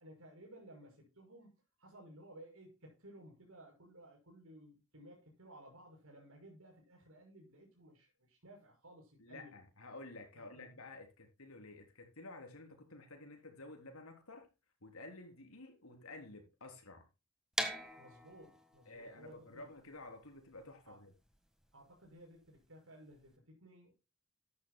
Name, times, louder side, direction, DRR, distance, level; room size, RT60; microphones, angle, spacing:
voice 1, 0.0-1.5 1.8-9.5 10.3-10.8 18.0-19.7 20.8-21.0 21.7-23.9, right 1 dB, 80° right, 6.2 m, -57 dB
voice 2, 9.2-14.5 14.8-17.1 18.9-21.1, left 2 dB, 85° left, 3.7 m, -52 dB
sound 1, 17.5-23.3, right 1 dB, 5° right, 1.5 m, -44 dB
14.0 x 11.0 x 2.2 m
head